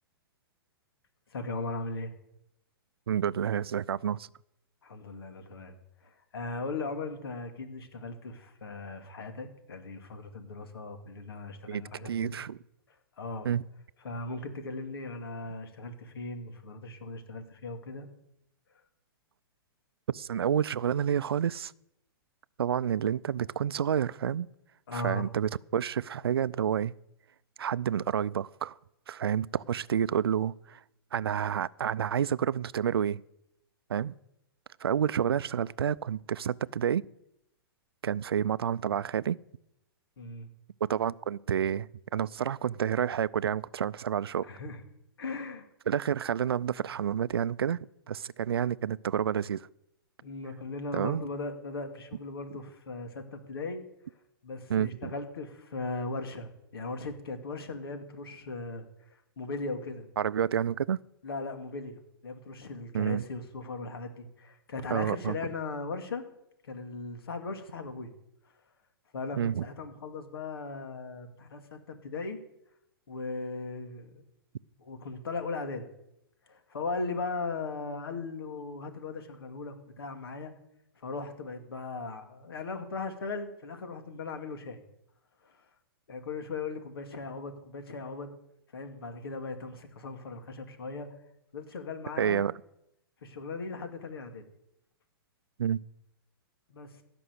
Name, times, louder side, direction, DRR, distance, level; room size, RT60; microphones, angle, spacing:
voice 1, 1.3-2.1 4.8-5.7 6.0-12.5 12.9-13.5 14.0-18.1 24.9-25.3 40.2-40.5 44.4-44.8 45.2-45.7 50.2-53.8 54.4-60.1 61.2-66.3 66.6-68.1 69.1-72.4 73.1-74.2 74.8-75.9 76.5-80.5 81.0-84.8 85.4-85.7 86.1-88.3 88.7-91.1 91.5-92.5 93.2-94.4 96.7-97.0, left 3 dB, 80° left, 2.3 m, -38 dB
voice 2, 3.1-4.3 11.7-12.6 13.4-13.6 20.1-21.7 22.6-24.5 24.9-26.9 27.6-28.7 29.1-30.8 31.1-33.2 33.9-34.1 34.8-37.1 38.0-39.4 40.9-44.5 45.9-47.8 48.1-49.7 50.9-51.2 54.7-55.1 60.2-61.0 62.9-63.2 64.9-65.3 69.4-69.6 92.2-92.5 95.6-95.8, right 9 dB, 85° right, 0.4 m, -29 dB
16.0 x 6.1 x 8.0 m
hypercardioid pair, 125°, 12 cm